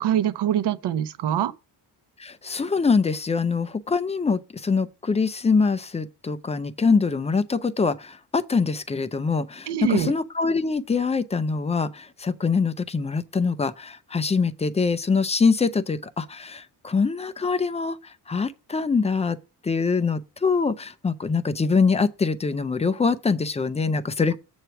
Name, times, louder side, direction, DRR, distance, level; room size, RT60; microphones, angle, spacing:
voice 1, 0.0-1.5 9.7-10.1, right 10 dB, 70° right, 0.8 m, -24 dB
voice 2, 2.2-19.4 19.6-24.4, left 4 dB, 15° left, 0.3 m, -24 dB
8.0 x 4.5 x 5.7 m
wide cardioid pair, 170°, 43 cm